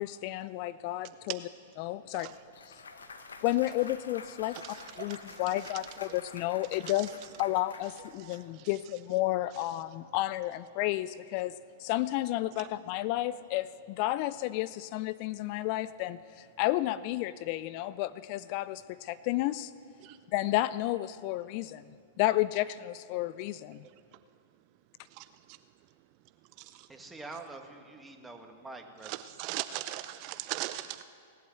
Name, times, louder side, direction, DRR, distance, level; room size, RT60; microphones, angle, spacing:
voice 1, 0.0-1.4 1.8-2.3 3.4-7.1 7.4-19.7 20.3-21.8 22.2-23.8, left 16 dB, 45° left, 17 dB, 0.4 m, -32 dB
Clapping / Cheering / Applause, 2.2-8.4, left 4 dB, 80° left, 1.0 m, -48 dB
voice 2, 4.5-5.7 6.1-6.2 6.9-7.1 7.5-7.6 8.2-8.7 12.6-12.7 20.0-20.2 25.1-25.6 26.6-26.9 29.0-31.0, right 15 dB, 45° right, 12 dB, 0.5 m, -40 dB
voice 3, 26.9-29.1, right 3 dB, 10° right, 3 dB, 1.6 m, -45 dB
18.5 x 8.4 x 7.8 m, 2.3 s
hypercardioid pair, 105°, 0 cm